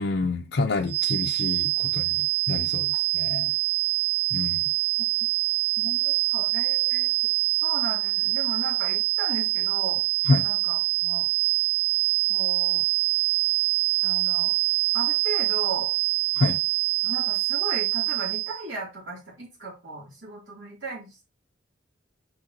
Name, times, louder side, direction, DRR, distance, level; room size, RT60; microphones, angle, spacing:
voice 1, 0.0-3.5 4.3-4.7 10.3-10.5 16.4-16.6, left 2 dB, 65° left, 0.6 m, -27 dB
sound 1, 0.9-18.6, right 29 dB, 60° right, 1.2 m, -25 dB
voice 2, 5.8-7.1 7.6-10.0 10.4-11.3 12.3-12.8 14.0-14.5 14.9-15.9 17.0-21.2, right 2 dB, 75° right, 3.1 m, -36 dB
6.4 x 6.2 x 2.9 m
head